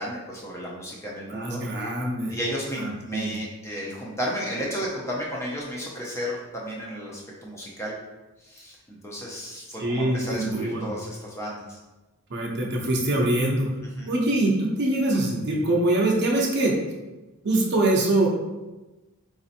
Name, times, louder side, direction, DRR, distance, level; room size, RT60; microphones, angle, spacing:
voice 1, 0.0-1.6 2.3-7.9 8.4-11.8 13.8-14.1, equal, 10° left, -4 dB, 0.5 m, -33 dB
voice 2, 1.3-2.3 2.8-3.3 9.8-10.9 12.3-13.7 14.1-16.8 17.4-18.3, right 1 dB, 50° right, -1 dB, 0.6 m, -24 dB
4.0 x 2.7 x 2.5 m, 1.1 s
head